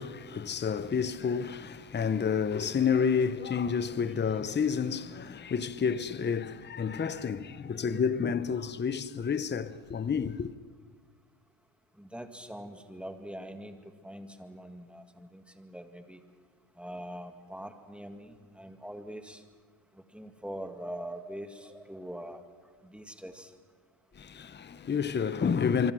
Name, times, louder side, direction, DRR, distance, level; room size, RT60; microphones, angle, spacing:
voice 1, 0.0-10.5 24.2-25.9, left 6 dB, 25° left, 0.8 m, -30 dB
voice 2, 12.0-16.2 16.8-19.4 19.9-22.4 22.8-23.5, equal, ahead, 2.0 m, -43 dB
25.5 x 24.5 x 6.2 m
cardioid pair, 115°, 46 cm